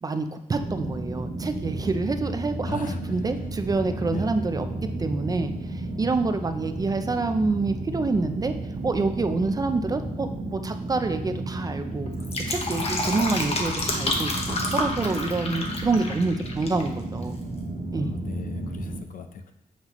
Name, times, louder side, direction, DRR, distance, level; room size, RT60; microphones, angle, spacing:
voice 1, 0.0-4.7 5.0-8.5 8.8-12.1 12.5-17.3 17.9-18.2, right 3 dB, 25° right, 8 dB, 0.4 m, -27 dB
sound 1, 0.5-19.0, right 2 dB, 80° right, 1.4 m, -33 dB
voice 2, 2.7-3.0 4.1-4.2 17.9-19.5, left 5 dB, 65° left, 7 dB, 0.6 m, -37 dB
Fill (with liquid), 12.1-16.9 17.1-17.2, left 2 dB, 45° left, 0.9 m, -29 dB
7.4 x 5.7 x 3.0 m, 0.81 s
wide cardioid pair, 175°, 15 cm